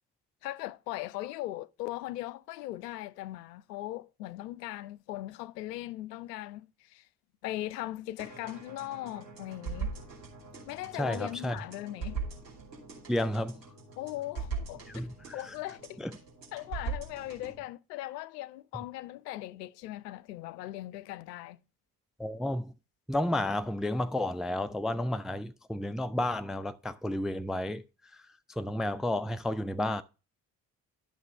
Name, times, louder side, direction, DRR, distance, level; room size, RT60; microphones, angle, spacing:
voice 1, 0.4-7.1 7.4-9.9 10.7-12.2 14.0-14.8 15.3-16.0 16.5-21.6, left 16 dB, 75° left, 0.6 m, -39 dB
sound 1, 8.2-17.6, right 5 dB, 85° right, 2.6 m, -41 dB
voice 2, 11.0-11.6 13.1-13.7 14.9-15.5 16.0-16.1 22.2-22.7 23.1-27.8 28.1-28.2 28.5-30.0, left 1 dB, ahead, 0.3 m, -32 dB
11.5 x 5.9 x 3.0 m
figure-of-eight pair, 45°, 49 cm